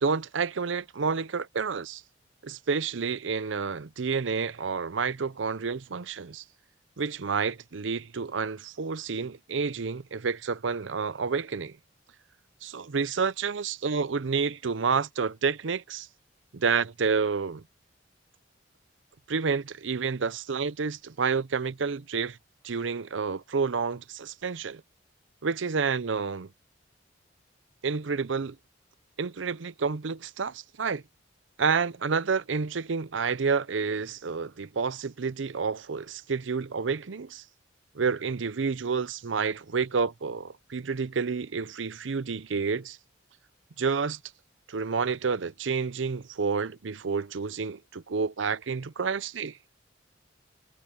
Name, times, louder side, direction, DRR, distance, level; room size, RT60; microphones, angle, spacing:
voice 1, 0.0-2.0 2.4-6.4 7.0-11.7 12.6-16.1 16.5-17.6 19.3-22.4 22.6-24.8 25.4-26.5 27.8-28.5 29.2-31.0 31.6-37.4 38.0-43.0 43.8-44.2 44.7-49.5, right 5 dB, 80° right, 0.6 m, -29 dB
head